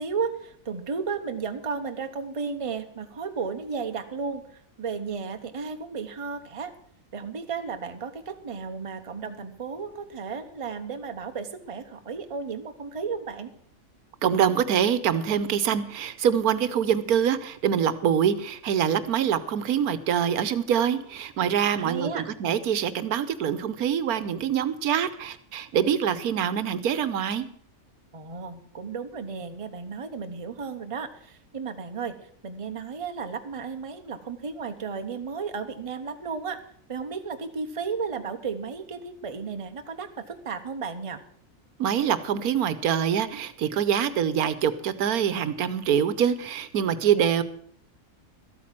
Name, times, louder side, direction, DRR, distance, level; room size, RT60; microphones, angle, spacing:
voice 1, 0.0-6.7 7.1-13.5 21.7-22.3 28.1-32.1 32.4-36.6 36.9-41.2, right 5 dB, 25° right, 7 dB, 0.9 m, -34 dB
voice 2, 14.2-27.5 41.8-47.4, right 8 dB, 85° right, 14 dB, 1.3 m, -25 dB
13.0 x 8.6 x 7.5 m, 0.64 s
omnidirectional pair, 1.5 m